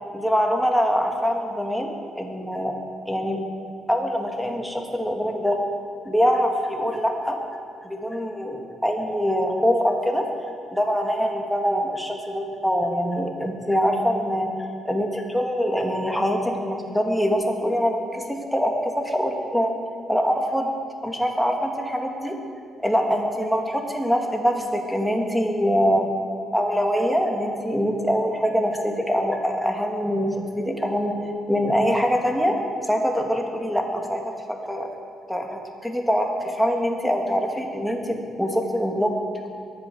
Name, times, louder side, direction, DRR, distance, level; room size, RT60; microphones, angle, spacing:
voice 1, 0.1-2.7 3.1-3.4 3.9-5.6 6.0-7.4 7.8-10.2 10.7-14.5 14.8-19.7 20.1-20.7 21.0-22.3 22.8-26.1 26.5-30.3 30.6-31.1 31.5-32.6 32.8-34.2 34.5-34.9 35.3-39.2, equal, ahead, 1 dB, 2.3 m, -24 dB
22.5 x 7.9 x 6.5 m, 2.5 s
cardioid pair, 90°, 0 cm